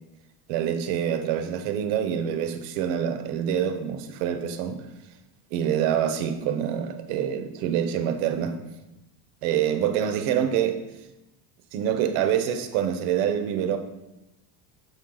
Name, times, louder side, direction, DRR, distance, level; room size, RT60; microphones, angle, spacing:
voice 1, 0.5-4.8 5.5-8.6 9.4-10.8 11.7-13.8, right 9 dB, 80° right, 0.9 m, -26 dB
7.0 x 4.5 x 3.7 m
cardioid pair, 150°, 50 cm